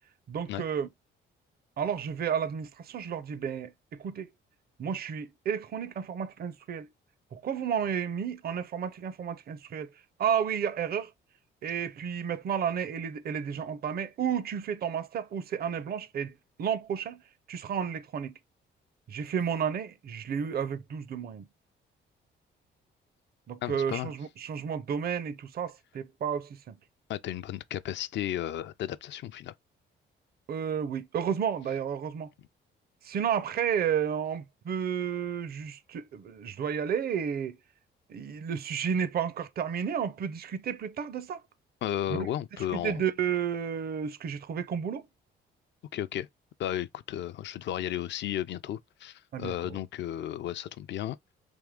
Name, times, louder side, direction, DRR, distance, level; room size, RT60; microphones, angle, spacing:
voice 1, 0.3-0.9 1.8-4.3 4.8-6.9 7.3-9.9 10.2-11.1 11.6-17.2 17.5-18.3 19.1-21.5 23.5-26.7 30.5-32.3 33.0-37.6 38.1-41.4 42.1-42.3 42.7-45.0 49.3-49.8, right 8 dB, 50° right, 0.6 m, -32 dB
voice 2, 23.6-24.1 27.1-29.5 41.8-43.0 45.9-46.3 46.6-51.2, left 12 dB, 65° left, 0.4 m, -34 dB
3.6 x 3.0 x 3.5 m
cardioid pair, 90°, 20 cm